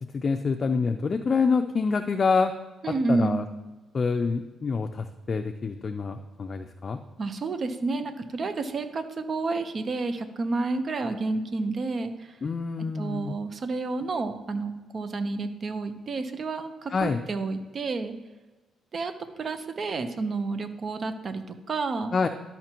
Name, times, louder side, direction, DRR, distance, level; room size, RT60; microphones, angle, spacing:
voice 1, 0.0-2.5 3.1-3.4 3.9-7.0 12.4-13.3 16.9-17.2 22.1-22.3, left 4 dB, 40° left, 6 dB, 0.5 m, -26 dB
voice 2, 2.8-3.5 7.2-12.4 12.9-18.1 18.9-22.1, right 3 dB, 45° right, 8 dB, 0.9 m, -30 dB
12.5 x 5.7 x 3.0 m, 1.2 s
cardioid pair, 90°, 0 cm